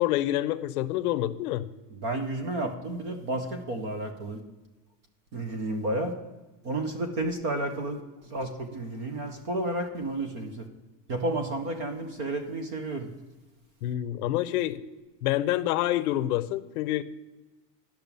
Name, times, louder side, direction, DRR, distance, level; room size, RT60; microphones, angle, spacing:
voice 1, 0.0-1.7 13.8-14.8 15.2-17.0, left 14 dB, 70° left, 13 dB, 0.7 m, -27 dB
voice 2, 1.9-4.4 5.3-6.1 6.6-10.7 11.1-13.1, right 1 dB, 20° right, 7 dB, 0.4 m, -31 dB
10.5 x 5.9 x 6.8 m, 1.1 s
supercardioid pair, 165°, 48 cm